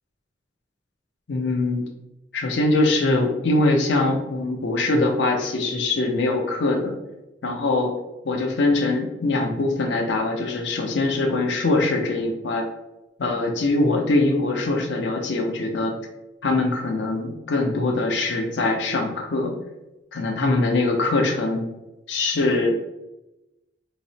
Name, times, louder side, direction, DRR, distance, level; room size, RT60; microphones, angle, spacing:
voice 1, 1.3-1.9 2.3-7.0 7.4-7.9 8.2-12.6 13.2-15.9 16.4-19.5 20.1-21.7 22.1-22.7, left 2 dB, 70° left, 2 dB, 0.6 m, -22 dB
4.0 x 2.1 x 2.7 m, 0.96 s
head